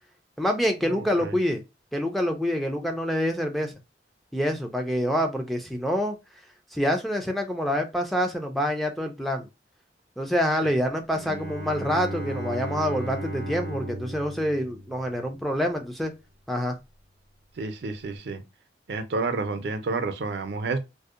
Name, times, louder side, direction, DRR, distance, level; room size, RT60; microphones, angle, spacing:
voice 1, 0.4-1.6 1.9-3.7 4.3-6.2 6.7-9.5 10.2-16.1 16.5-16.7, equal, ahead, 0.3 m, -26 dB
voice 2, 0.9-1.3 10.6-10.7 17.6-18.4 18.9-20.8, right 3 dB, 75° right, 0.5 m, -30 dB
Bowed string instrument, 11.1-15.4, right 1 dB, 65° left, 1.1 m, -35 dB
2.6 x 2.0 x 2.3 m
head